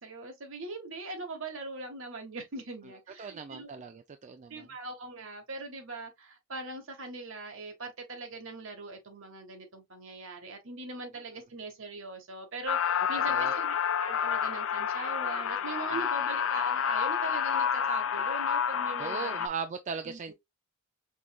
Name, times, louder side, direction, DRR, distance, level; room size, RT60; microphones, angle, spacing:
voice 1, 0.0-3.7 4.5-19.4 20.0-20.3, right 3 dB, 65° right, 1.5 m, -41 dB
voice 2, 3.2-4.7 13.2-13.6 15.9-16.0 19.0-20.3, right 5 dB, 35° right, 0.4 m, -38 dB
sound 1, 12.7-19.5, left 7 dB, 65° left, 0.5 m, -29 dB
5.3 x 3.2 x 2.3 m
head